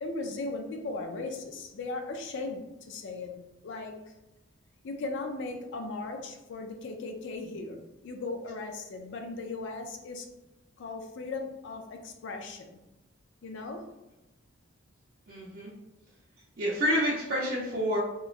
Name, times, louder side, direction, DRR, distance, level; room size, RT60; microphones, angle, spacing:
voice 1, 0.0-4.0 4.8-10.3 10.8-12.8 13.4-13.9, left 3 dB, 65° left, 4 dB, 0.4 m, -37 dB
voice 2, 15.3-15.7 16.6-18.0, equal, 45° right, -8 dB, 0.6 m, -28 dB
2.9 x 2.3 x 2.4 m, 1.0 s
head